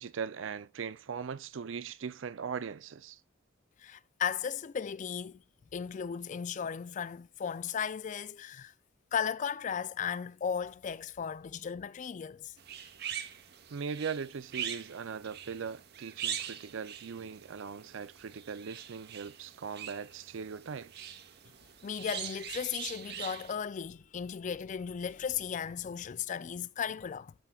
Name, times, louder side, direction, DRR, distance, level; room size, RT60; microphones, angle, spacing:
voice 1, 0.0-3.2 13.7-21.2, right 6 dB, 70° right, 0.5 m, -40 dB
voice 2, 3.8-5.4 5.7-8.7 9.1-12.5 21.8-27.3, left 7 dB, 40° left, 0.3 m, -36 dB
sound 1, 12.6-23.6, right 9 dB, 55° right, 0.9 m, -43 dB
12.5 x 5.6 x 2.3 m
head